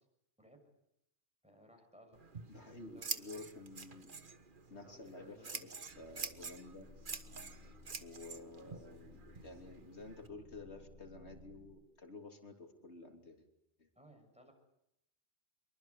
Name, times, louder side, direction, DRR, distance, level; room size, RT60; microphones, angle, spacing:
voice 1, 1.4-3.3 4.9-5.6 13.9-14.5, equal, 5° right, 3 dB, 6.9 m, -61 dB
Scissors, 2.1-10.3, right 4 dB, 50° right, 1.5 m, -47 dB
voice 2, 2.5-4.1 4.7-6.9 8.0-13.5 13.8-13.9, left 3 dB, 85° left, 3 dB, 3.6 m, -51 dB
sound 1, 5.9-11.8, left 2 dB, 85° right, 6.2 m, -59 dB
25.5 x 23.5 x 8.3 m, 0.81 s
omnidirectional pair, 1.1 m